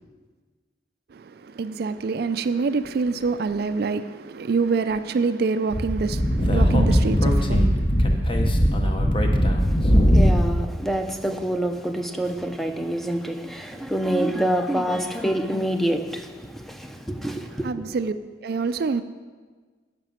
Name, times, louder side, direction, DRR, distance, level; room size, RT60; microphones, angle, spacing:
voice 1, 1.1-8.9 17.6-19.0, right 4 dB, 60° right, 0.4 m, -26 dB
Speech / Wind, 5.7-10.6, equal, 30° left, 0.8 m, -19 dB
voice 2, 9.7-17.9, right 1 dB, ahead, 0.6 m, -27 dB
10.5 x 6.0 x 7.3 m
head